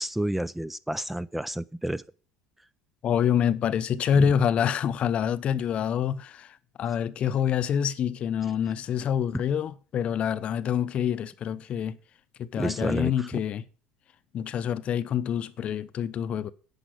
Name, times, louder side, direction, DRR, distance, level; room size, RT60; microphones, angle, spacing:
voice 1, 0.0-2.0 4.1-4.3 12.6-13.4, right 1 dB, 5° right, 0.4 m, -30 dB
voice 2, 3.0-12.0 12.4-13.6 14.3-16.5, left 8 dB, 45° left, 0.7 m, -26 dB
10.5 x 5.2 x 7.8 m
supercardioid pair, 85°, 3 cm